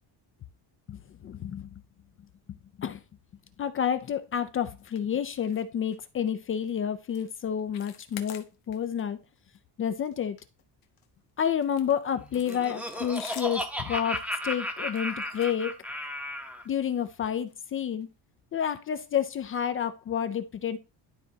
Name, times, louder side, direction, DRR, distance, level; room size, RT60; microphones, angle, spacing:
voice 1, 0.9-1.7 2.5-3.0 3.6-9.2 9.8-10.4 11.4-15.7 16.7-18.1 18.5-20.8, left 8 dB, 35° left, 0.4 m, -30 dB
sound 1, 4.8-5.0 5.3-5.6 5.9-6.1 6.5-6.7 7.1-7.3 7.6-9.0 9.4-9.6 9.9-11.1 11.6-16.2 16.9-17.1 17.5-17.6 18.0-18.1, left 10 dB, 60° left, 0.9 m, -49 dB
Laughter, 12.2-16.6, equal, 5° right, 0.7 m, -34 dB
11.5 x 4.1 x 2.7 m
cardioid pair, 160°, 42 cm